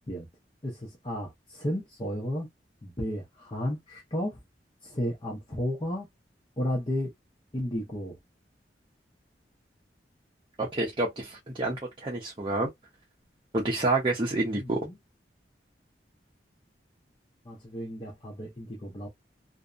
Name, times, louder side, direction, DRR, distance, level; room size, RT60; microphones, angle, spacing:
voice 1, 0.6-2.5 2.8-4.4 4.8-6.1 6.6-7.1 7.5-8.2 14.5-15.0 17.4-19.1, left 1 dB, 30° left, 0.7 m, -33 dB
voice 2, 10.6-12.7 13.5-14.8, right 2 dB, 25° right, 0.6 m, -28 dB
2.7 x 2.0 x 2.4 m
head